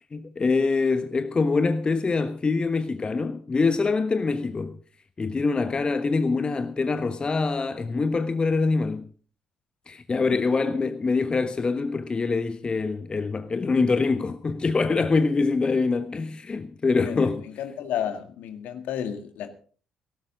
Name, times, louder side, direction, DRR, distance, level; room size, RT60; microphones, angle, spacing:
voice 1, 0.1-4.7 5.2-9.1 9.9-17.4, left 4 dB, 30° left, 1.2 m, -24 dB
voice 2, 17.6-19.5, left 9 dB, 60° left, 2.0 m, -32 dB
17.5 x 15.5 x 3.9 m
figure-of-eight pair, 45°, 3 cm